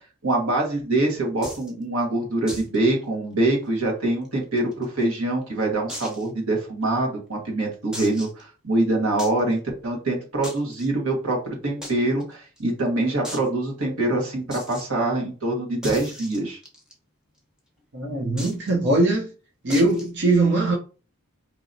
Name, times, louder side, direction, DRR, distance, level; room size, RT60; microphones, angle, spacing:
voice 1, 0.2-11.4 11.6-16.6, right 2 dB, 90° right, 1.5 m, -24 dB
sound 1, 1.4-1.7 2.5-2.8 3.0-3.1 3.5-3.6 4.3-5.0 5.9-6.3 6.8-6.9 7.9-8.4 9.2-9.4 10.4-10.9 11.8-11.9 12.2-12.3 12.6-12.7 13.2-13.5 14.5-14.9 15.8-16.9 18.4-18.7 19.7-20.1, equal, 5° right, 0.8 m, -36 dB
voice 2, 17.9-19.3 19.6-20.8, right 2 dB, 55° right, 0.6 m, -21 dB
4.6 x 2.9 x 2.6 m
head